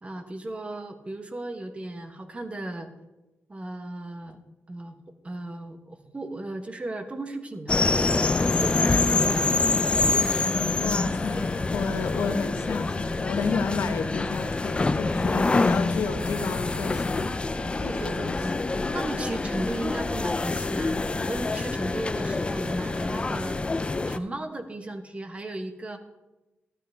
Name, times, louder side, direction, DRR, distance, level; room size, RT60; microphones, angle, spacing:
voice 1, 0.0-2.9 3.5-4.4 4.7-5.0 5.2-9.8 17.6-18.6 18.9-26.0, right 2 dB, 30° right, 8 dB, 1.2 m, -36 dB
sound 1, 7.7-24.2, left 3 dB, 25° left, 0.5 m, -26 dB
voice 2, 10.8-18.6, left 5 dB, 85° left, 7 dB, 1.1 m, -31 dB
12.5 x 12.0 x 3.4 m, 1.0 s
cardioid pair, 90°, 4 cm